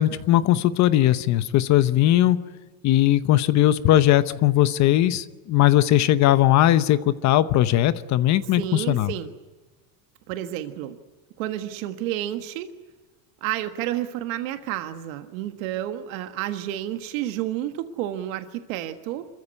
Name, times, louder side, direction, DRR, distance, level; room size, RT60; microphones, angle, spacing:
voice 1, 0.0-2.4 2.8-9.1, left 13 dB, 45° left, 14 dB, 0.9 m, -19 dB
voice 2, 8.5-9.3 10.3-10.9 11.4-12.7 13.4-19.3, right 13 dB, 90° right, 8 dB, 1.5 m, -30 dB
26.5 x 14.5 x 9.7 m, 1.3 s
cardioid pair, 145°, 39 cm